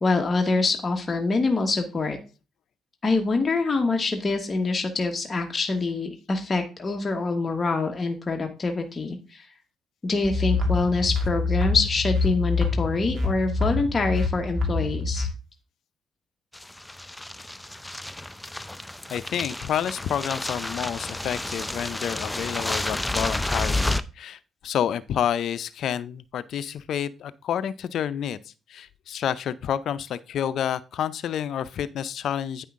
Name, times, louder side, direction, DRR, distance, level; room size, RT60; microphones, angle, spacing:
voice 1, 0.0-2.2 3.0-9.5 10.0-15.3, left 3 dB, 30° left, 1.3 m, -25 dB
sound 1, 10.2-15.3, left 3 dB, 40° right, 2.2 m, -26 dB
sound 2, 16.5-24.0, left 1 dB, 10° left, 0.5 m, -31 dB
voice 2, 19.1-32.6, left 9 dB, 70° left, 0.5 m, -29 dB
9.3 x 5.6 x 3.6 m
cardioid pair, 90°, 0 cm